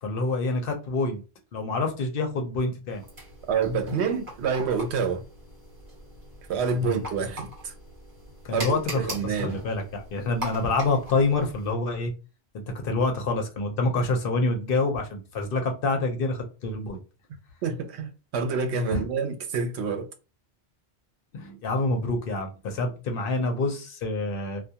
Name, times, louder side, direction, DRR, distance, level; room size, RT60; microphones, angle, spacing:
voice 1, 0.0-1.2 1.5-3.0 6.8-7.0 8.5-9.0 9.4-12.1 12.8-17.0 18.9-19.0 21.3-24.6, left 3 dB, 60° left, 0.7 m, -27 dB
sound 1, 2.9-11.7, equal, 50° right, 1.3 m, -40 dB
voice 2, 3.5-5.2 6.5-7.7 8.5-9.6 17.6-20.1, right 5 dB, 80° right, 0.9 m, -27 dB
2.3 x 2.2 x 2.7 m
omnidirectional pair, 1.1 m